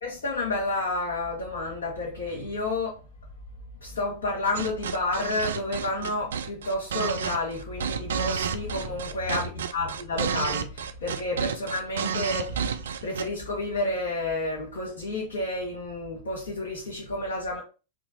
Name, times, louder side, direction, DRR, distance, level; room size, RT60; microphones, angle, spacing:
voice 1, 0.0-3.0 3.8-12.8 13.0-17.6, left 2 dB, 65° left, 1.2 m, -30 dB
sound 1, 4.5-13.3, right 7 dB, 65° right, 0.3 m, -31 dB
4.3 x 2.7 x 2.8 m
figure-of-eight pair, 90°, 0 cm